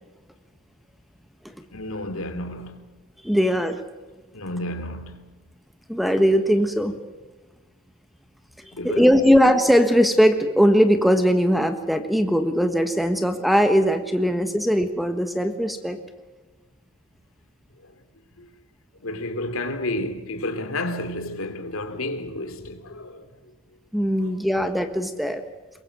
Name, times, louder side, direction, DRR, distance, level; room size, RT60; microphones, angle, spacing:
voice 1, 1.7-2.8 4.3-5.3 8.7-9.1 17.8-17.9 18.4-18.5 19.0-23.3 24.2-24.4, left 1 dB, 65° left, 2.8 m, -31 dB
voice 2, 3.2-3.8 5.9-6.9 8.8-16.0 23.9-25.4, equal, ahead, 1.3 m, -20 dB
23.0 x 22.0 x 7.7 m
head